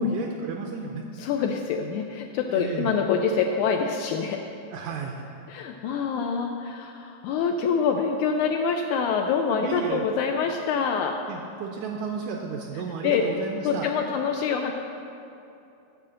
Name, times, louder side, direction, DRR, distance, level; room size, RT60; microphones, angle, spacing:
voice 1, 0.0-1.0 2.5-2.9 4.7-5.2 9.6-10.0 11.3-13.9, right 5 dB, 90° right, 2 dB, 1.7 m, -33 dB
voice 2, 1.2-4.4 5.5-11.1 13.0-13.2 13.6-14.7, left 6 dB, 85° left, 3 dB, 1.7 m, -25 dB
8.4 x 6.3 x 7.7 m, 2.7 s
omnidirectional pair, 4.0 m